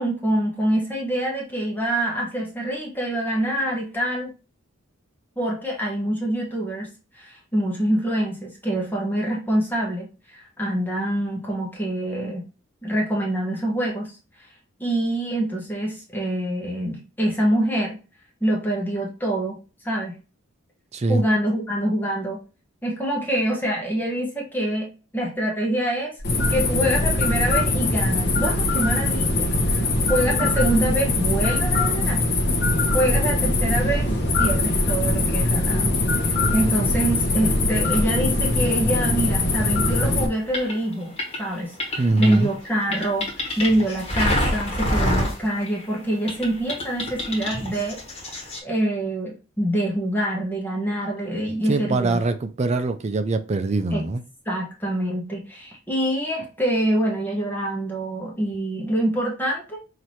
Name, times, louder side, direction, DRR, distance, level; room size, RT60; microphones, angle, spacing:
voice 1, 0.0-4.3 5.4-6.9 7.1-12.4 12.8-14.1 14.8-18.0 18.4-19.6 19.8-20.1 21.1-22.4 22.8-26.1 26.5-32.2 32.9-34.1 34.4-35.9 36.2-41.1 41.4-43.2 43.6-52.2 53.9-54.0 54.5-59.8, right 1 dB, 10° left, 1.0 m, -25 dB
voice 2, 20.9-21.2 42.0-42.5 51.7-54.2, right 3 dB, 30° right, 0.4 m, -23 dB
sound 1, 26.2-40.3, left 2 dB, 55° left, 0.9 m, -22 dB
sound 2, 39.8-46.0 46.3-48.6, left 1 dB, 30° left, 1.4 m, -27 dB
5.7 x 2.8 x 3.1 m
head